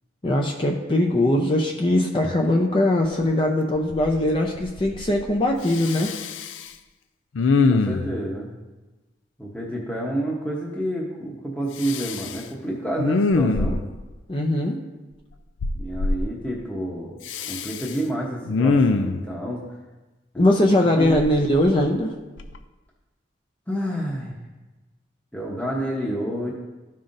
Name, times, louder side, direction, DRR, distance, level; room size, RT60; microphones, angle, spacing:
voice 1, 0.2-6.1 14.3-14.8 20.4-22.1, left 1 dB, 25° left, 1 dB, 0.5 m, -21 dB
Respiratory sounds, 3.2-3.3 3.7-4.3 4.5-5.3 5.7-6.7 7.3-8.2 11.8-12.4 13.0-14.0 15.6-16.2 17.2-17.9 18.5-19.2 21.0-22.0 22.4-22.6, left 3 dB, 80° left, 0.4 m, -23 dB
voice 2, 7.7-8.5 9.4-13.8 15.7-17.2 17.5-19.6 20.3-20.5 20.8-21.4 23.7-24.3 25.3-26.5, right 1 dB, 10° left, -4 dB, 0.9 m, -29 dB
13.0 x 5.5 x 2.6 m, 1.1 s
head